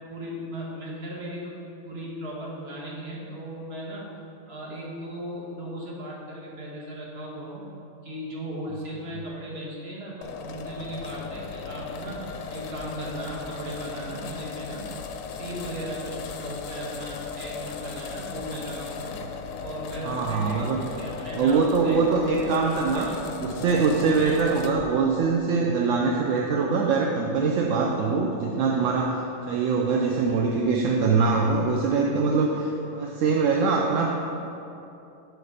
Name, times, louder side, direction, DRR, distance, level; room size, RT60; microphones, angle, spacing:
voice 1, 0.1-4.1 4.5-7.7 8.0-12.3 12.5-14.9 15.3-19.2 19.6-20.7 21.0-22.0 22.9-23.3 24.2-24.4, right 1 dB, 50° right, -4 dB, 1.4 m, -37 dB
sound 1, 10.2-24.9, left 5 dB, 85° left, 1.0 m, -37 dB
voice 2, 20.0-20.8 21.3-23.1 23.4-29.1 29.5-34.3, right 4 dB, 75° right, 0 dB, 0.9 m, -23 dB
8.1 x 3.3 x 6.4 m, 2.8 s
omnidirectional pair, 1.4 m